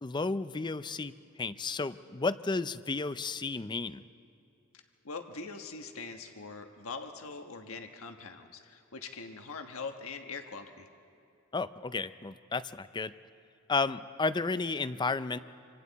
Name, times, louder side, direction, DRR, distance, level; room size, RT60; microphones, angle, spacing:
voice 1, 0.0-1.1 1.4-4.0 11.5-13.1 13.7-15.4, left 3 dB, 20° left, 14 dB, 0.5 m, -32 dB
voice 2, 4.7-10.9, left 4 dB, 90° left, 5 dB, 1.3 m, -43 dB
27.0 x 26.0 x 4.1 m, 2.7 s
head